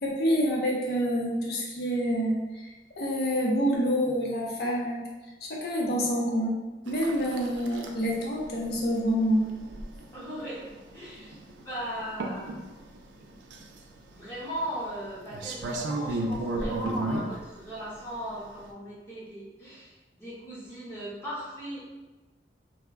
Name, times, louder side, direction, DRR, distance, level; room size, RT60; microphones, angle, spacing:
voice 1, 0.0-5.0 5.5-6.6 6.9-9.5, equal, 60° left, -3 dB, 0.6 m, -27 dB
sound 1, 6.9-18.7, right 2 dB, 90° right, 0.4 m, -36 dB
voice 2, 10.1-10.6 10.9-11.4 11.6-12.5 14.1-21.8, equal, 15° left, -9 dB, 0.6 m, -38 dB
2.2 x 2.1 x 3.4 m, 1.2 s
head